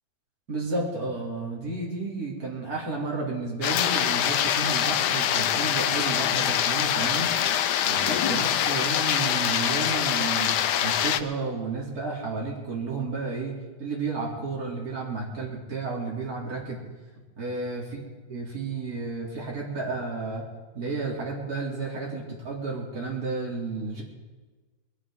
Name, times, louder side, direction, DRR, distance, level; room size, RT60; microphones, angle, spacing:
voice 1, 0.5-7.3 7.8-16.8 17.4-18.0 18.3-20.4 20.8-24.0, right 3 dB, 45° right, -4 dB, 3.6 m, -32 dB
sound 1, 3.6-11.2, left 10 dB, 70° left, 1.1 m, -24 dB
21.5 x 14.0 x 3.8 m, 1.3 s
omnidirectional pair, 2.2 m